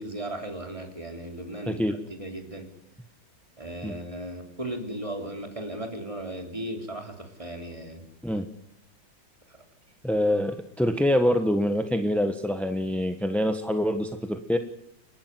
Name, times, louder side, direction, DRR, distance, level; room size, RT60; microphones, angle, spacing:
voice 1, 0.0-2.7 3.6-8.0, right 1 dB, 15° right, 3 dB, 3.6 m, -36 dB
voice 2, 10.0-14.6, equal, ahead, 7 dB, 0.9 m, -25 dB
30.0 x 12.0 x 9.6 m, 0.74 s
omnidirectional pair, 2.2 m